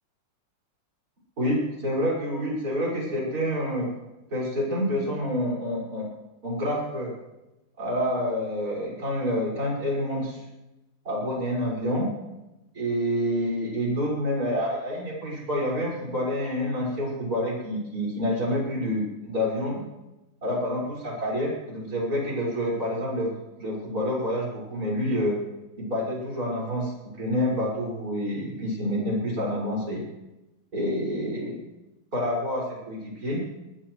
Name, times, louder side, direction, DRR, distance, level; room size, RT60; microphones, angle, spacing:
voice 1, 1.4-3.9 4.3-6.1 6.4-7.1 7.8-10.4 11.0-12.1 12.7-19.8 20.4-23.3 23.6-25.4 25.8-30.1 30.7-31.6 32.1-33.4, equal, 40° right, -4 dB, 6.4 m, -28 dB
22.0 x 19.5 x 3.2 m, 1.0 s
omnidirectional pair, 2.4 m